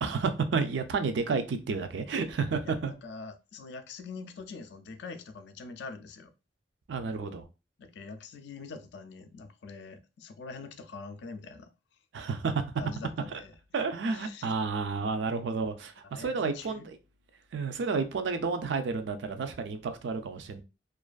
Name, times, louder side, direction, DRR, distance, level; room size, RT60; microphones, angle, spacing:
voice 1, 0.0-2.9 6.9-7.4 12.1-12.7 13.7-17.0 17.5-20.6, right 4 dB, 75° right, 0.4 m, -31 dB
voice 2, 2.7-6.3 7.8-11.7 12.8-13.5 14.1-14.5 16.1-16.9, left 4 dB, 70° left, 0.4 m, -44 dB
2.4 x 2.4 x 2.3 m
head